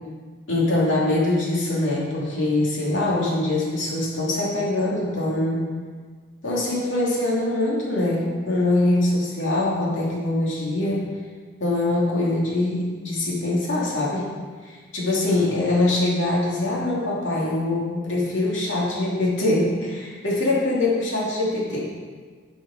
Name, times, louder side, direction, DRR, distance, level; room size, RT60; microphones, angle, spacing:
voice 1, 0.5-5.6 6.4-11.0 11.6-14.3 14.6-21.8, left 2 dB, 90° left, -5 dB, 2.5 m, -23 dB
10.5 x 5.3 x 5.0 m, 1.6 s
head